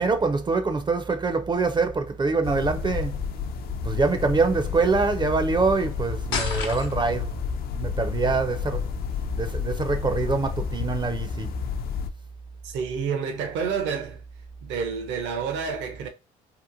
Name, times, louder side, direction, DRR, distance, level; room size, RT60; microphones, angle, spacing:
voice 1, 0.0-3.2 3.8-7.4 7.7-8.9 9.4-11.5, right 4 dB, 25° right, 0.4 m, -24 dB
sound 1, 2.4-12.1, left 6 dB, 50° left, 0.4 m, -31 dB
sound 2, 6.3-7.3, left 5 dB, 75° left, 0.8 m, -30 dB
voice 2, 12.6-14.2 14.6-16.1, right 6 dB, 70° right, 0.6 m, -29 dB
2.8 x 2.1 x 2.5 m
supercardioid pair, 65°, 20 cm